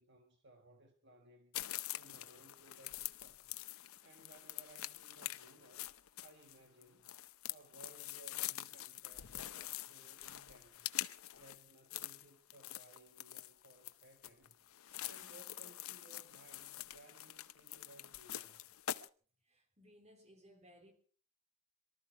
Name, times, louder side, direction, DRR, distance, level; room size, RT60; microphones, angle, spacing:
voice 1, 0.0-1.6 2.0-3.6 4.0-7.1 7.4-11.0 11.4-14.6 15.0-18.7, right 1 dB, 55° right, 1.6 m, -62 dB
sound 1, 1.5-19.1, left 13 dB, 90° left, 0.7 m, -45 dB
voice 2, 19.4-20.9, equal, 30° right, 3.3 m, -63 dB
23.0 x 13.0 x 4.6 m
head